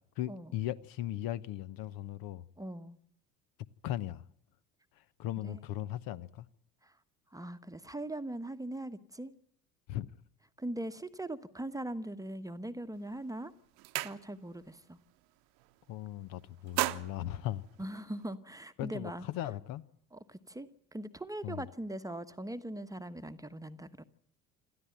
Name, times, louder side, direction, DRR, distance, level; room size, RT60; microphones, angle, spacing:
voice 1, 0.2-2.4 3.8-4.2 4.9-6.5 9.9-10.1 15.9-17.6 18.8-19.8 21.4-21.7, left 13 dB, 50° left, 1.0 m, -38 dB
voice 2, 2.6-3.0 5.4-5.6 6.8-6.9 7.3-9.3 10.6-13.5 14.0-15.0 17.8-19.3 20.1-24.0, right 1 dB, 10° right, 1.2 m, -41 dB
sound 1, 12.9-13.2 13.5-14.7 15.0-15.3 15.6-16.1 16.5-18.3, right 21 dB, 55° right, 1.1 m, -37 dB
27.0 x 14.0 x 9.2 m
figure-of-eight pair, 65°, 45 cm